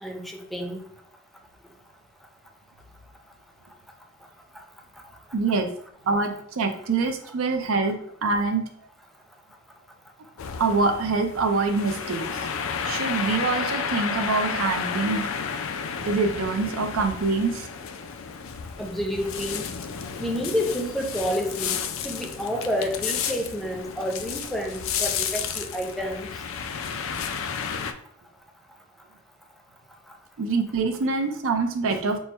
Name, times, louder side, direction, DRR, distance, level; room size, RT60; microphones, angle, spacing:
voice 1, 0.0-0.8 7.8-7.9 18.8-19.7 20.2-26.3, equal, ahead, 2 dB, 0.5 m, -29 dB
voice 2, 5.3-5.7 6.1-8.6 10.6-12.5 12.8-15.3 16.0-17.7 30.4-32.2, right 4 dB, 65° right, 5 dB, 0.5 m, -25 dB
sound 1, 10.4-27.9, left 6 dB, 70° left, 0.4 m, -32 dB
4.4 x 2.2 x 4.3 m, 0.68 s
head